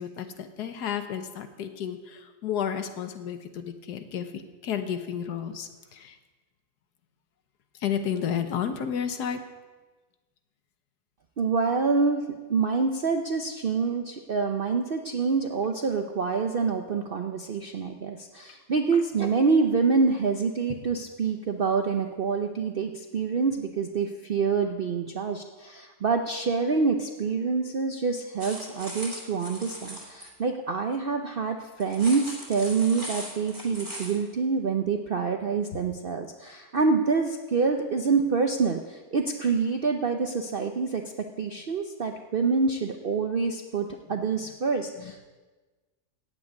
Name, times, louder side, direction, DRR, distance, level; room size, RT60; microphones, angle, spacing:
voice 1, 0.0-6.2 7.7-9.4 45.0-45.3, left 8 dB, 80° left, 8 dB, 1.5 m, -32 dB
voice 2, 11.4-12.2 12.5-41.0 41.4-45.3, right 4 dB, 55° right, 4 dB, 0.6 m, -26 dB
sound 1, 28.4-30.3 31.8-34.2, right 1 dB, 15° right, 3.0 m, -39 dB
15.0 x 5.2 x 9.4 m, 1.3 s
omnidirectional pair, 1.7 m